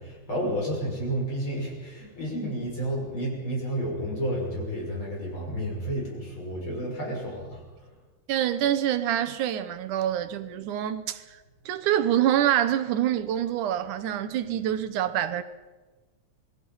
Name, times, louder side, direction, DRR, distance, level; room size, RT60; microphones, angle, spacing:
voice 1, 0.0-7.9, right 1 dB, 40° left, 6.9 m, -31 dB
voice 2, 8.3-11.2 11.7-15.4, right 11 dB, 80° right, 2.5 m, -26 dB
27.0 x 20.5 x 5.6 m
omnidirectional pair, 3.6 m